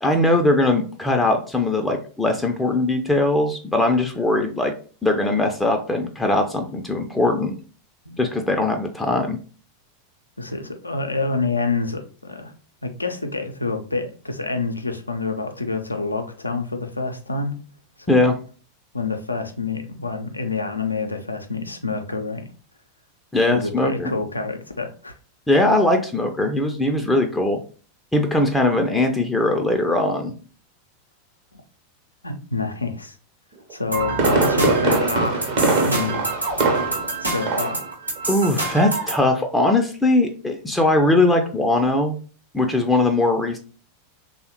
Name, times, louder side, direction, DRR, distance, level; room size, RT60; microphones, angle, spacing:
voice 1, 0.0-4.7 5.0-7.6 8.2-9.4 18.1-18.4 23.3-24.1 25.5-27.6 28.1-30.3 38.3-42.2 42.5-43.6, left 2 dB, 10° left, 4 dB, 0.4 m, -20 dB
voice 2, 10.4-12.5 12.8-17.6 18.1-18.3 18.9-22.4 23.5-25.1 32.2-33.2 33.7-35.5 35.8-36.2 37.2-37.9, left 3 dB, 85° left, 6 dB, 0.4 m, -27 dB
Fireworks, 33.7-37.2 37.5-37.8 38.2-38.3, right 3 dB, 50° right, 0.7 m, -22 dB
sound 1, 33.9-39.2, right 2 dB, 90° right, 0.9 m, -27 dB
3.3 x 2.1 x 2.9 m, 0.39 s
figure-of-eight pair, 90°, 0 cm